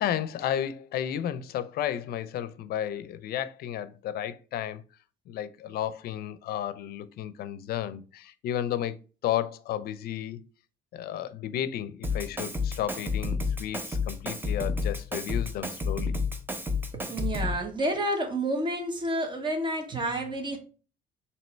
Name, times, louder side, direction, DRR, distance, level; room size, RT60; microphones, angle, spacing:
voice 1, 0.0-4.8 5.3-8.9 9.2-10.4 10.9-16.2, left 11 dB, 65° left, 0.5 m, -32 dB
Drum kit, 12.0-17.6, left 4 dB, 10° right, 0.7 m, -30 dB
voice 2, 16.9-20.6, right 1 dB, 30° right, 1.3 m, -29 dB
4.3 x 2.8 x 3.1 m
cardioid pair, 110°, 17 cm